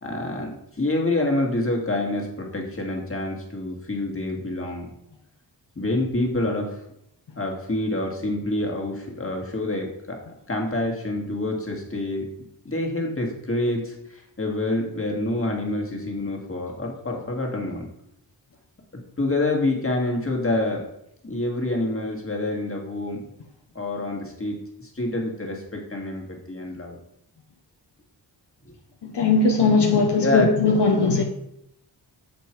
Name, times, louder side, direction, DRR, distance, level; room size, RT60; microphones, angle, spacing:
voice 1, 0.0-4.9 5.8-6.8 7.4-10.2 10.5-12.2 12.7-17.9 19.2-20.9 21.2-23.2 23.7-27.0 30.2-30.5, left 2 dB, 30° left, 1.8 m, -27 dB
voice 2, 29.0-31.2, left 4 dB, 70° left, 0.9 m, -19 dB
7.4 x 5.2 x 4.4 m
wide cardioid pair, 85°, 42 cm